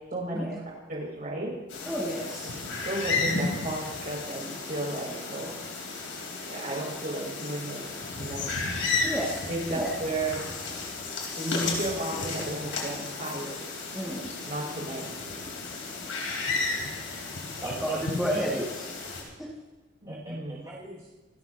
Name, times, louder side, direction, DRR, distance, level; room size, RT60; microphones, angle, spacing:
voice 1, 0.1-0.5 0.9-1.5 2.4-5.6 6.4-7.8 8.2-8.5 9.5-10.4 11.4-13.6 14.5-15.1 20.0-20.6, right 2 dB, 50° right, -4 dB, 6.1 m, -33 dB
sound 1, 1.7-19.2, left 3 dB, 90° left, 3.8 m, -33 dB
voice 2, 1.9-2.6 9.0-9.3 9.7-9.9 13.9-14.3 18.2-18.9 19.4-19.5, equal, 5° right, -6 dB, 2.2 m, -31 dB
voice 3, 17.6-18.7 20.1-21.1, right 2 dB, 25° right, -8 dB, 2.3 m, -40 dB
27.5 x 12.5 x 2.9 m, 1.2 s
head